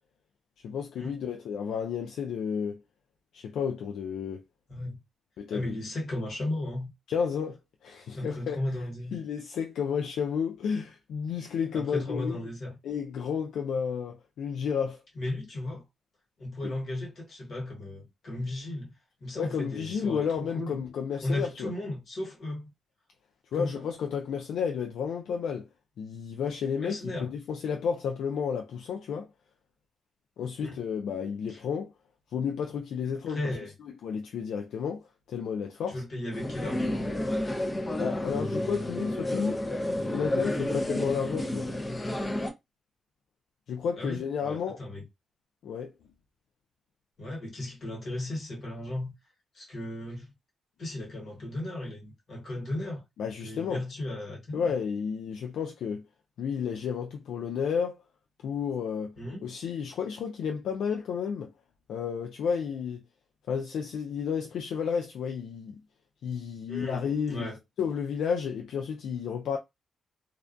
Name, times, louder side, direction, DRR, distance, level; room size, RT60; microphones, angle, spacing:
voice 1, 0.6-2.8 3.3-4.4 5.4-5.8 7.1-8.6 9.1-12.5 12.8-15.0 16.6-16.7 19.4-21.7 23.5-25.7 26.0-29.3 30.4-31.9 32.3-33.4 34.0-35.0 35.3-36.0 38.0-39.6 40.1-41.7 43.7-44.8 45.6-45.9 53.2-53.8 54.5-56.0 56.4-58.0 58.4-59.1 59.4-61.5 61.9-63.0 63.5-65.8 66.2-67.5 67.8-69.6, left 7 dB, 85° left, 0.3 m, -32 dB
voice 2, 4.7-5.0 5.5-6.9 8.1-9.1 11.7-12.8 15.2-15.8 16.4-18.9 19.2-20.8 21.2-22.7 23.5-23.9 26.8-27.3 30.6-30.8 31.5-31.6 33.3-33.7 35.9-37.2 44.0-45.0 47.2-49.1 49.5-50.3 50.8-53.0 53.4-54.7 59.2-59.5 66.7-67.0 67.3-67.6, left 1 dB, 60° left, 1.3 m, -35 dB
sound 1, 36.3-42.5, left 1 dB, 25° left, 0.5 m, -31 dB
2.3 x 2.2 x 2.5 m
cardioid pair, 90°, 0 cm